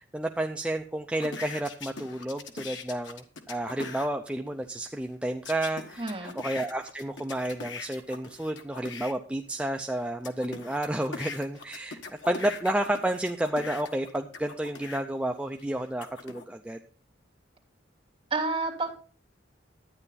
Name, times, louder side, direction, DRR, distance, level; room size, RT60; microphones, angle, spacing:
voice 1, 0.0-12.0 12.3-16.8, right 1 dB, 5° right, 4 dB, 0.5 m, -31 dB
sound 1, 1.2-4.1 5.4-9.1 9.7-15.0 15.6-16.4, left 4 dB, 75° left, 1.4 m, -41 dB
voice 2, 6.0-6.3 18.3-18.9, right 3 dB, 30° right, -2 dB, 3.0 m, -29 dB
12.0 x 9.8 x 4.1 m, 0.41 s
head